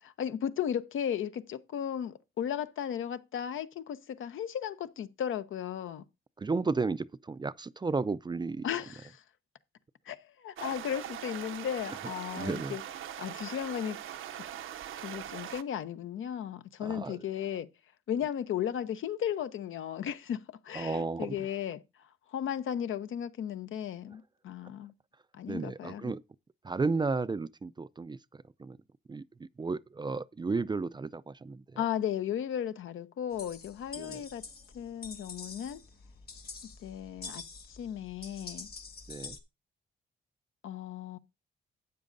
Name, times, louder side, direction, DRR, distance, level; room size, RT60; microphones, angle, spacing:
voice 1, 0.0-6.0 8.6-9.2 10.1-12.8 13.2-14.0 15.0-17.7 18.1-21.8 22.3-24.9 25.3-26.1 31.8-34.4 34.7-35.8 36.8-37.4 37.7-38.7 40.6-41.2, left 9 dB, 75° left, 0.7 m, -35 dB
voice 2, 6.4-8.7 12.4-12.8 16.8-17.2 20.8-21.4 25.5-26.2 26.6-28.2 28.6-28.8 29.1-31.6 34.0-34.2 39.1-39.4, right 4 dB, 20° right, 0.4 m, -33 dB
sound 1, 10.6-15.6, right 10 dB, 80° right, 0.7 m, -41 dB
sound 2, 33.3-39.4, left 4 dB, 50° left, 1.8 m, -46 dB
12.5 x 8.4 x 2.6 m
cardioid pair, 75°, 21 cm